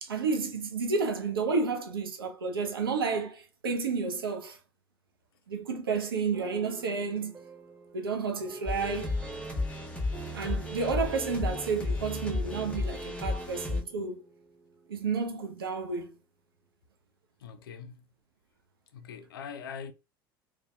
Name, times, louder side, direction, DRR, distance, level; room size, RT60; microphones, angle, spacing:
voice 1, 0.0-4.6 5.5-7.4 7.9-9.2 10.3-14.2 14.9-16.1, right 4 dB, 80° right, 0.4 m, -31 dB
sound 1, 6.3-15.5, right 3 dB, 15° right, 0.5 m, -50 dB
sound 2, 8.7-13.8, left 2 dB, 10° left, 0.8 m, -33 dB
voice 2, 17.4-18.1 18.9-19.9, left 6 dB, 70° left, 0.4 m, -42 dB
2.6 x 2.1 x 2.2 m
figure-of-eight pair, 70°, 12 cm